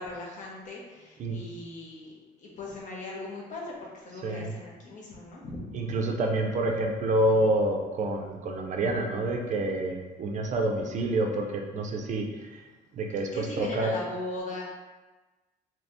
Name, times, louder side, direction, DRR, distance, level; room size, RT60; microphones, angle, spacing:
voice 1, 0.0-2.1 2.4-5.8 13.3-14.6, left 2 dB, 50° left, -3 dB, 0.9 m, -39 dB
voice 2, 5.7-12.6 12.9-13.9, right 2 dB, 45° right, 2 dB, 0.5 m, -28 dB
2.8 x 2.6 x 3.4 m, 1.2 s
cardioid pair, 110°, 17 cm